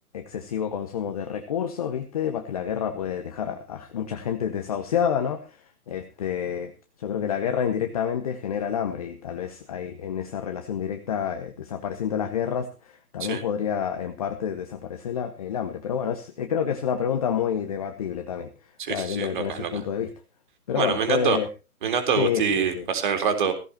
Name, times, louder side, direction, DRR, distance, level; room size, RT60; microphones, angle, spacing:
voice 1, 0.1-5.6 5.9-6.7 7.0-18.5 18.9-20.1 20.7-21.5 22.2-22.9, left 8 dB, 25° left, 6 dB, 1.3 m, -28 dB
voice 2, 18.8-19.8 20.7-21.4 21.8-23.5, right 7 dB, 30° right, 7 dB, 3.8 m, -25 dB
16.5 x 16.5 x 2.9 m, 0.32 s
figure-of-eight pair, 145°, 45 cm